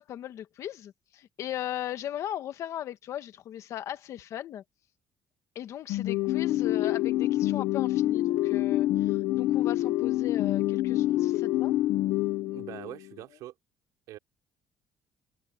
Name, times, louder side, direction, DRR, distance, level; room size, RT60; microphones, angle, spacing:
voice 1, 0.0-4.6 5.5-11.7, left 11 dB, 60° left, 1.6 m, -37 dB
sound 1, 5.9-13.1, left 15 dB, 85° left, 1.1 m, -26 dB
voice 2, 12.5-13.5 14.1-14.2, right 15 dB, 85° right, 3.8 m, -43 dB
cardioid pair, 140°, 6 cm